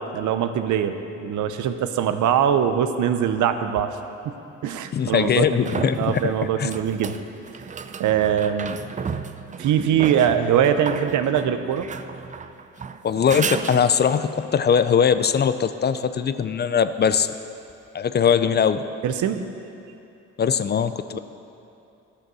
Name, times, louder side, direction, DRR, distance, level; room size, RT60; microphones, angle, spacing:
voice 1, 0.1-4.0 4.2-4.3 4.6-7.2 8.0-8.8 9.6-11.9 19.0-19.5 21.1-21.2, right 9 dB, 75° right, 9 dB, 0.7 m, -22 dB
sound 1, 3.8-3.9 5.1-14.3 17.7-17.8, right 6 dB, 25° right, 0.4 m, -34 dB
voice 2, 4.9-6.7 13.0-17.3 17.9-18.8 20.4-21.2, left 7 dB, 35° left, 12 dB, 0.4 m, -21 dB
12.0 x 6.6 x 6.2 m, 2.7 s
cardioid pair, 90°, 30 cm